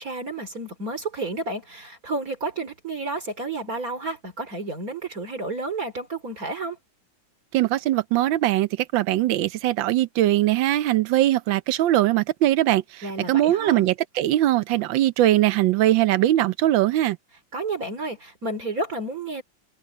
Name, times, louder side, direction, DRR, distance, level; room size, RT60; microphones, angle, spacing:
voice 1, 0.0-6.8 13.0-13.8 17.5-19.4, right 2 dB, 45° right, 3.6 m, -31 dB
voice 2, 7.5-17.2, right 14 dB, 80° right, 1.5 m, -21 dB
omnidirectional pair, 2.1 m